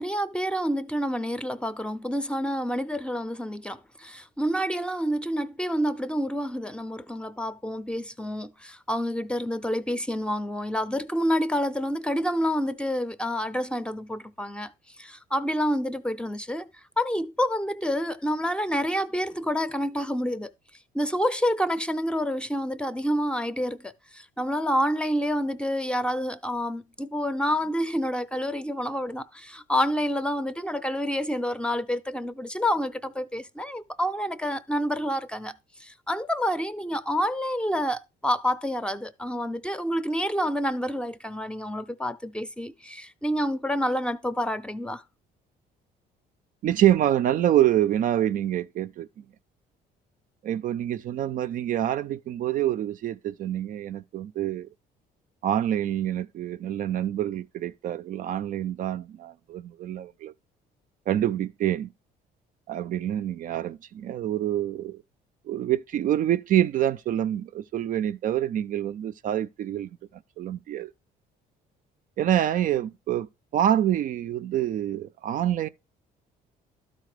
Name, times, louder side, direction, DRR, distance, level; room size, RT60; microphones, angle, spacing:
voice 1, 0.0-14.7 15.0-16.7 17.0-20.5 20.9-35.5 35.8-45.0, equal, 5° left, 0.5 m, -28 dB
voice 2, 46.6-49.1 50.4-54.7 55.4-60.3 61.1-61.9 62.7-65.0 65.5-69.9 70.4-70.9 72.2-73.3 73.5-75.7, right 11 dB, 55° right, 0.4 m, -26 dB
12.5 x 4.2 x 4.9 m
cardioid pair, 110°, 17 cm